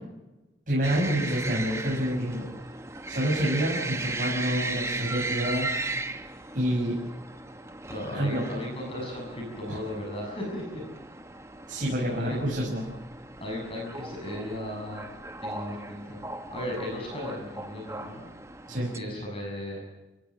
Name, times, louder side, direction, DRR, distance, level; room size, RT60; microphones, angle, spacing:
voice 1, 0.7-2.5 3.1-5.7 6.5-7.0 8.1-8.4 9.7-9.8 11.7-12.8 18.7-18.9, equal, 45° right, -3 dB, 6.3 m, -27 dB
sound 1, 0.8-19.0, right 2 dB, 15° right, 1.3 m, -37 dB
voice 2, 7.9-10.9 12.0-12.4 13.4-15.1 15.4-16.2 16.5-18.2 18.7-19.8, left 1 dB, 30° left, -1 dB, 7.0 m, -36 dB
29.0 x 18.0 x 7.3 m, 1.1 s
head